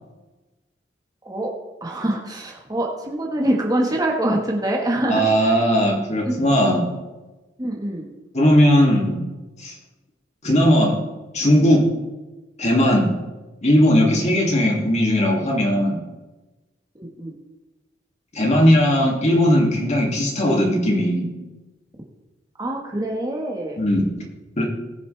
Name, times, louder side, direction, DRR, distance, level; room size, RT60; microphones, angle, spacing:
voice 1, 1.8-5.6 6.2-6.5 7.6-8.1 11.7-11.9 14.1-14.3 16.9-17.3 22.6-23.8, right 1 dB, 20° right, -1 dB, 1.5 m, -25 dB
voice 2, 5.1-6.8 8.3-9.2 9.6-9.7 10.4-11.0 11.3-11.8 12.6-13.1 13.6-16.0 18.3-21.3 23.8-24.1 24.6-24.7, equal, 40° left, -1 dB, 2.6 m, -18 dB
20.5 x 6.9 x 3.4 m, 1.1 s
head